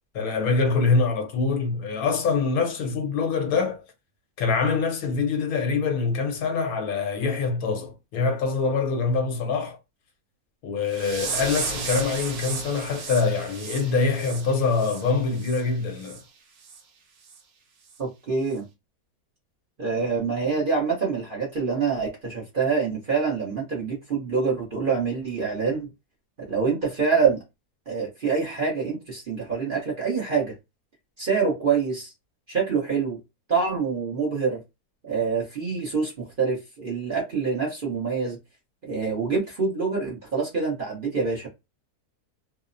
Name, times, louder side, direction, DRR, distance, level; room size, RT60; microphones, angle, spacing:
voice 1, 0.1-3.8 4.4-9.8 10.6-16.2, left 4 dB, 70° left, 1.1 m, -24 dB
sound 1, 10.9-15.6 16.0-16.2 16.6-16.8 17.3-17.4 17.9-18.0, right 4 dB, 70° right, 1.1 m, -34 dB
voice 2, 18.0-18.6 19.8-25.9 26.5-27.4 27.9-30.5 31.2-32.1 32.5-33.2 33.5-34.6 35.0-38.4 38.8-41.5, right 5 dB, 40° right, 0.8 m, -26 dB
2.9 x 2.0 x 2.5 m
omnidirectional pair, 1.7 m